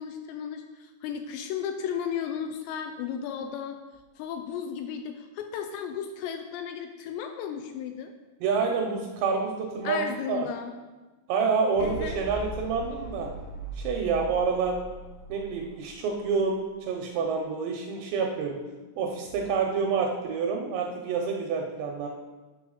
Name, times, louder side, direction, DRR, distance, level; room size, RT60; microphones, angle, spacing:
voice 1, 0.0-3.8 4.2-8.1 9.8-10.7 11.8-12.2, left 8 dB, 85° left, 6 dB, 2.6 m, -34 dB
voice 2, 8.4-10.5 11.3-13.3 13.8-14.8 15.3-18.6 19.0-22.1, right 5 dB, 80° right, 2 dB, 2.7 m, -28 dB
sound 1, 11.8-16.3, right 2 dB, 60° left, 2.1 m, -40 dB
9.0 x 4.1 x 6.3 m, 1.2 s
omnidirectional pair, 5.5 m